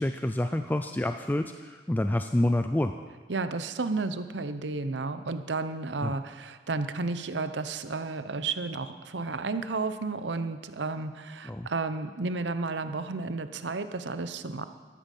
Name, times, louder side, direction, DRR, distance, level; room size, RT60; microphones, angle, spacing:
voice 1, 0.0-2.9 6.0-6.1 11.4-11.7, left 1 dB, 10° left, 7 dB, 0.3 m, -28 dB
voice 2, 3.3-14.7, right 3 dB, 85° right, 11 dB, 0.8 m, -32 dB
13.0 x 12.5 x 5.4 m, 1.5 s
head